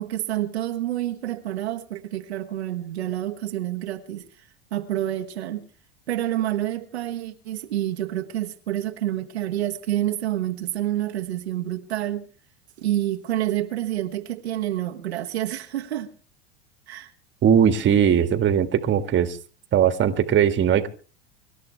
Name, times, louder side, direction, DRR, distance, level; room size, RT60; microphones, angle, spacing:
voice 1, 0.0-4.3 4.7-5.7 6.1-12.3 12.8-16.1 16.9-17.1, right 13 dB, 80° right, 1.3 m, -28 dB
voice 2, 17.4-19.4 19.7-20.9, right 8 dB, 35° right, 1.8 m, -19 dB
25.5 x 12.5 x 3.4 m
hypercardioid pair, 85°, 32 cm